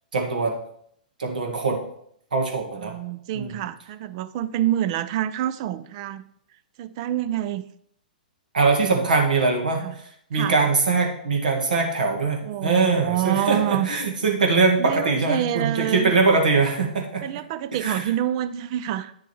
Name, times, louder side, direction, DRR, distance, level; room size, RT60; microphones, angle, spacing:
voice 1, 0.1-0.6 1.2-1.8 2.3-2.9 3.3-3.6 8.5-9.8 10.3-17.2 17.8-18.1, right 4 dB, 65° right, 2 dB, 1.8 m, -22 dB
voice 2, 2.8-6.2 6.8-7.6 8.9-9.1 9.8-9.9 10.3-10.5 12.4-13.9 14.8-16.1 17.2-19.1, right 12 dB, 40° right, 15 dB, 0.5 m, -27 dB
9.4 x 6.7 x 3.1 m, 0.69 s
figure-of-eight pair, 115°, 5 cm